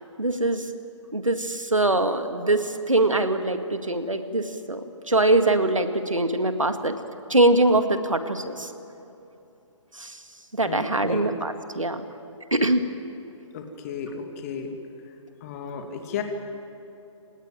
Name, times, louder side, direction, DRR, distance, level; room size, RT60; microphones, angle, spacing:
voice 1, 0.2-0.7 1.1-4.8 5.1-7.0 7.3-8.7 9.9-10.2 10.5-12.0 12.5-12.9, right 2 dB, 85° right, 8 dB, 2.0 m, -23 dB
voice 2, 10.7-11.3 13.5-14.7 15.4-16.2, left 6 dB, 30° left, 4 dB, 2.6 m, -34 dB
27.0 x 18.5 x 9.1 m, 2.9 s
figure-of-eight pair, 135°, 16 cm